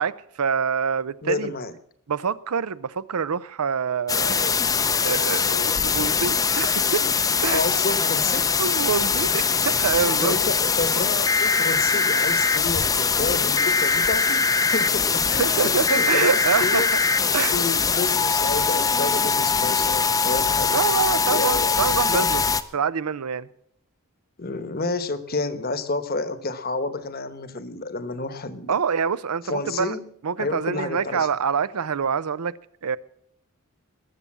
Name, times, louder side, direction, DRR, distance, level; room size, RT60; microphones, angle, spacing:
voice 1, 0.0-1.5 2.1-4.6 5.0-7.0 7.4-7.6 8.6-10.4 15.4-16.8 17.3-17.6 20.7-22.4 22.7-23.5 28.7-30.0 30.2-32.6 32.8-33.0, right 6 dB, 90° right, 0.6 m, -26 dB
voice 2, 1.2-1.7 7.5-8.5 10.2-16.9 17.5-20.8 21.3-22.3 24.4-28.7 29.4-30.1 30.4-31.3, left 3 dB, 45° left, 1.1 m, -30 dB
sound 1, 4.1-22.6, left 5 dB, 15° left, 0.5 m, -22 dB
sound 2, 12.4-14.4 14.8-15.6 16.0-16.9 17.3-17.4 18.1-18.2 18.4-18.8 19.2-19.5 20.0-20.1, equal, 65° right, 3.4 m, -43 dB
20.5 x 7.0 x 7.3 m
head